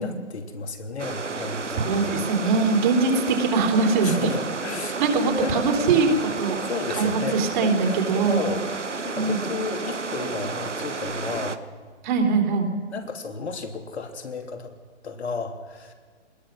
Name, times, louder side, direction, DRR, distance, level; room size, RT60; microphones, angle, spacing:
voice 1, 0.0-1.9 4.0-5.1 5.4-5.7 6.6-8.7 9.0-11.6 12.9-14.7 15.0-15.9, left 4 dB, 65° left, 5 dB, 2.9 m, -33 dB
sound 1, 1.0-11.6, right 4 dB, 90° right, 1.3 m, -32 dB
voice 2, 1.8-4.3 5.0-6.6 6.9-8.5 9.1-9.4 12.0-12.7, right 4 dB, 40° right, 4 dB, 3.5 m, -22 dB
23.0 x 20.5 x 6.2 m, 1.5 s
figure-of-eight pair, 130°, 35 cm